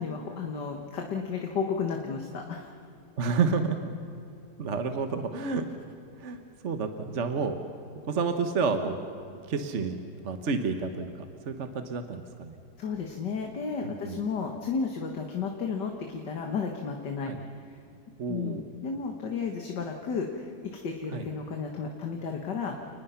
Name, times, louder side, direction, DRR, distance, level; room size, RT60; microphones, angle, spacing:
voice 1, 0.0-2.7 12.8-17.3 17.7-17.8 18.3-22.8, left 5 dB, 85° left, 3 dB, 2.1 m, -33 dB
voice 2, 3.2-3.9 4.6-5.7 6.2-6.4 6.6-7.6 8.0-9.0 9.5-10.0 10.2-12.5 13.8-14.2 17.3-17.4 18.2-18.6 21.1-21.2, right 5 dB, 50° right, 7 dB, 1.3 m, -30 dB
29.5 x 20.0 x 5.8 m, 2.7 s
omnidirectional pair, 1.8 m